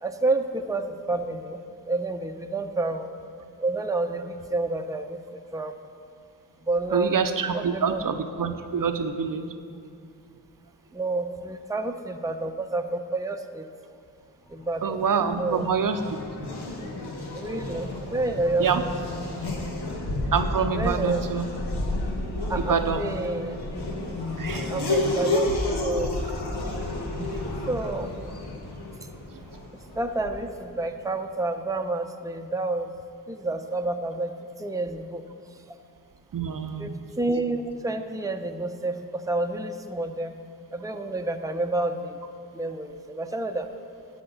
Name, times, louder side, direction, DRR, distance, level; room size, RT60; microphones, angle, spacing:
voice 1, 0.0-3.1 3.6-5.8 6.6-7.2 7.5-8.0 10.9-13.7 14.5-15.0 15.4-15.7 17.3-18.9 20.7-21.2 22.5-23.6 24.7-26.3 27.7-28.2 29.9-32.9 33.3-35.2 36.8-40.4 40.7-42.2 42.5-43.7, right 2 dB, 10° right, 5 dB, 0.7 m, -29 dB
voice 2, 6.9-9.5 14.8-16.0 16.4-16.8 18.6-18.8 19.4-19.5 20.3-21.5 22.2-23.0 24.4-25.1 27.2-27.7 29.3-29.4 36.3-37.0, right 6 dB, 60° right, 7 dB, 0.6 m, -27 dB
Race car auto racing / Accelerating revving vroom, 15.0-30.6, left 2 dB, 85° left, 1.2 m, -31 dB
12.0 x 5.8 x 5.4 m, 2.4 s
cardioid pair, 40°, 38 cm